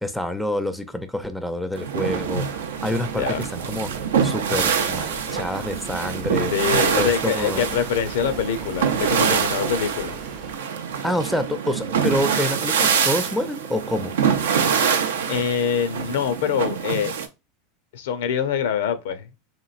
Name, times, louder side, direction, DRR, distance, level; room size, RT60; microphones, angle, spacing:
voice 1, 0.0-2.5 2.8-3.9 4.2-6.5 7.0-7.6 11.0-14.1, left 1 dB, ahead, 0.4 m, -27 dB
sound 1, 1.8-17.3, right 7 dB, 85° right, 0.4 m, -25 dB
sound 2, 2.0-10.6, right 5 dB, 45° right, 0.6 m, -40 dB
voice 2, 3.1-3.5 6.5-10.1 15.3-17.2 17.9-19.3, left 7 dB, 75° left, 0.5 m, -24 dB
2.9 x 2.5 x 2.4 m
hypercardioid pair, 100°, 0 cm